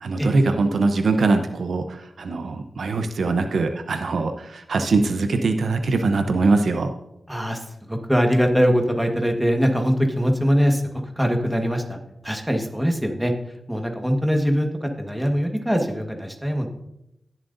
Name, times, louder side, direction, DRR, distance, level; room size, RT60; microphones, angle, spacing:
voice 1, 0.0-6.9, right 3 dB, 85° right, 7 dB, 0.8 m, -22 dB
voice 2, 7.3-7.6 7.9-10.8 11.2-12.0 12.2-13.3 13.7-16.7, equal, 5° right, 3 dB, 1.5 m, -22 dB
19.0 x 7.5 x 2.7 m, 0.85 s
wide cardioid pair, 75°, 0 cm